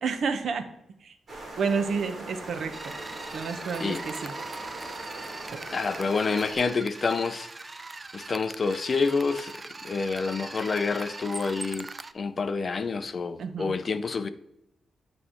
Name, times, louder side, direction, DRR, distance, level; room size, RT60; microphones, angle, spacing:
voice 1, 0.0-0.7 1.0-1.1 1.6-2.9 3.3-4.3 13.4-13.8, right 5 dB, 65° right, 0.8 m, -30 dB
sound 1, 1.3-6.6, right 1 dB, 40° right, 1.8 m, -40 dB
sound 2, 2.7-12.1, right 3 dB, 25° right, 0.3 m, -41 dB
voice 2, 5.7-7.5 8.1-9.6 9.8-11.9 12.1-14.3, left 4 dB, 40° left, 0.5 m, -28 dB
8.9 x 3.2 x 5.5 m
wide cardioid pair, 130°, 0 cm